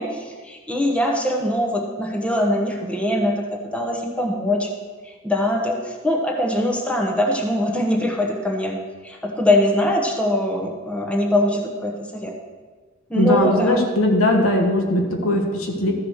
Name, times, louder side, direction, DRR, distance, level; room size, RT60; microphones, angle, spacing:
voice 1, 0.0-4.7 5.0-12.3 13.1-13.8, left 1 dB, 5° left, 0 dB, 1.0 m, -22 dB
voice 2, 13.2-15.9, left 1 dB, 75° left, 2 dB, 1.5 m, -19 dB
13.5 x 4.9 x 6.3 m, 1.5 s
head